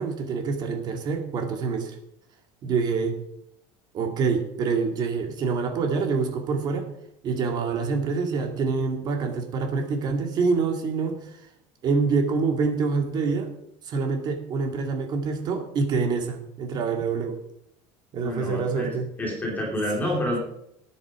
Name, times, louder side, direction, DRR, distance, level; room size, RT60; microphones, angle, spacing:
voice 1, 0.0-1.9 2.6-3.1 3.9-6.9 7.2-11.2 11.8-13.5 13.8-17.4 18.1-19.1, right 4 dB, 35° right, 4 dB, 2.3 m, -26 dB
voice 2, 18.2-20.4, left 1 dB, 15° left, -2 dB, 3.0 m, -28 dB
13.5 x 9.9 x 4.9 m, 0.76 s
cardioid pair, 170°, 12 cm